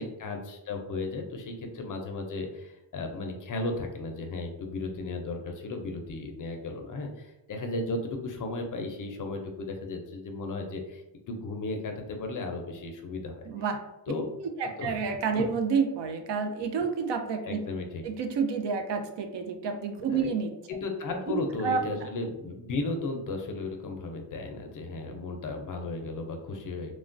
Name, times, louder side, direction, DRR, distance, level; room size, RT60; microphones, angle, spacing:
voice 1, 0.0-13.5 14.1-14.2 14.8-15.0 17.5-18.0 20.1-20.3 20.7-26.9, left 3 dB, 45° left, 4 dB, 0.5 m, -35 dB
voice 2, 13.5-13.8 14.6-17.6 18.0-20.5 21.3-21.8, right 5 dB, 65° right, 5 dB, 0.5 m, -29 dB
3.1 x 2.2 x 2.5 m, 0.94 s
cardioid pair, 120°, 46 cm